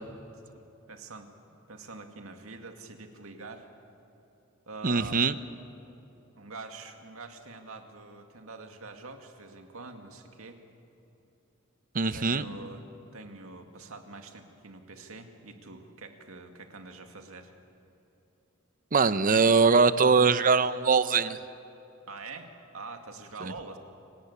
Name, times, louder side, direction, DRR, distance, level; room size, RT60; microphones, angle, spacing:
voice 1, 0.9-3.7 4.7-5.2 6.3-10.6 12.1-12.9 13.1-17.5 22.1-23.8, right 3 dB, 90° right, 5 dB, 2.2 m, -45 dB
voice 2, 4.8-5.3 11.9-12.4 18.9-21.4 23.4-23.5, right 4 dB, 40° right, 13 dB, 0.8 m, -22 dB
28.5 x 18.5 x 8.5 m, 2.9 s
head